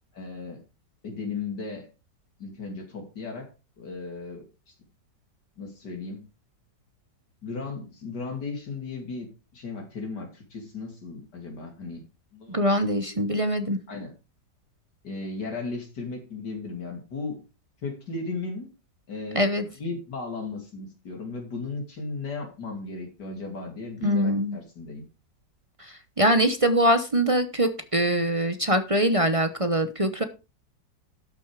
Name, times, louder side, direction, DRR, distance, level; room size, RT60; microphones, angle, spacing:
voice 1, 0.1-0.6 1.0-1.9 2.4-3.5 3.8-4.4 5.6-6.2 7.4-12.0 12.3-12.6 13.1-13.2 13.9-14.1 15.0-17.4 17.8-18.7 19.1-19.5 19.8-25.0, left 3 dB, 70° left, 2 dB, 3.0 m, -35 dB
voice 2, 12.5-13.8 19.3-19.6 24.0-24.6 25.8-30.2, equal, 30° right, 9 dB, 0.7 m, -23 dB
12.5 x 6.5 x 4.8 m, 0.30 s
omnidirectional pair, 1.9 m